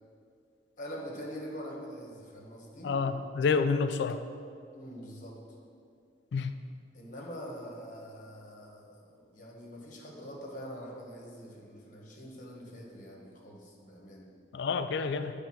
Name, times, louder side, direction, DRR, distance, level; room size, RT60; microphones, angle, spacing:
voice 1, 0.8-3.0 4.7-5.4 6.9-14.3, equal, 45° left, -1 dB, 1.2 m, -44 dB
voice 2, 2.8-4.2 6.3-6.6 14.5-15.3, left 5 dB, 70° left, 10 dB, 0.3 m, -28 dB
8.1 x 3.4 x 6.0 m, 2.3 s
head